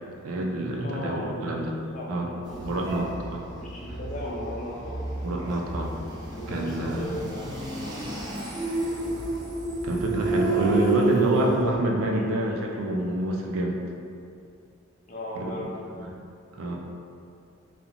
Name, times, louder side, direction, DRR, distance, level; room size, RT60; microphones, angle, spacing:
voice 1, 0.2-1.7 2.1-2.3 2.6-3.5 5.2-5.9 6.5-7.2 9.8-13.8 15.4-15.7 15.9-16.1 16.5-16.8, right 1 dB, 85° right, 0 dB, 0.4 m, -27 dB
voice 2, 0.8-1.3 1.7-2.6 3.6-5.0 6.3-8.1 10.4-11.5 11.8-12.3 15.1-15.9, equal, 40° left, -4 dB, 0.5 m, -36 dB
sound 1, 2.4-11.8, right 2 dB, 20° right, 0.4 m, -31 dB
2.4 x 2.0 x 2.9 m, 2.4 s
head